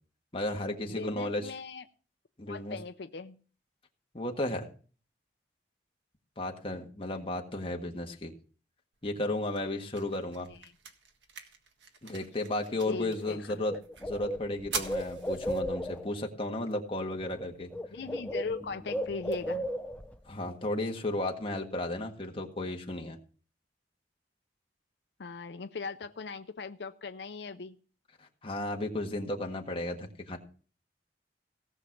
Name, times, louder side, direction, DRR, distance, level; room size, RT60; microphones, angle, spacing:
voice 1, 0.3-1.5 2.4-2.8 4.1-4.7 6.4-8.3 9.0-10.5 12.0-17.7 20.3-23.2 28.2-30.4, left 1 dB, 30° left, 2 dB, 1.6 m, -34 dB
voice 2, 0.9-1.8 2.5-3.4 10.5-10.7 12.9-13.6 17.9-19.7 25.2-27.8, left 4 dB, 70° left, 9 dB, 0.6 m, -39 dB
sound 1, 8.9-20.9, right 5 dB, 85° right, 1.6 m, -47 dB
Bird, 13.3-13.4 13.6-16.1 17.2-17.5 17.7-20.1, equal, 10° left, 0.5 m, -35 dB
17.5 x 6.3 x 5.8 m, 0.41 s
head